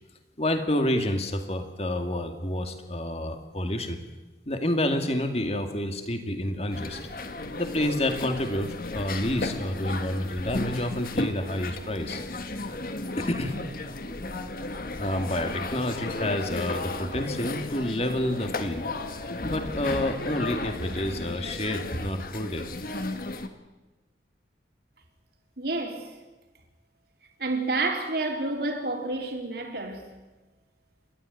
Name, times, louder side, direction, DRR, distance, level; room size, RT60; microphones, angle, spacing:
voice 1, 0.4-4.0 4.5-7.0 7.5-12.2 13.2-13.6 14.9-18.8 19.4-22.7, left 1 dB, 35° left, 2.3 m, -29 dB
sound 1, 6.7-23.5, left 2 dB, 55° left, 1.6 m, -34 dB
voice 2, 25.6-26.1 27.4-30.0, right 2 dB, 60° right, 3.5 m, -29 dB
28.5 x 13.0 x 9.5 m
head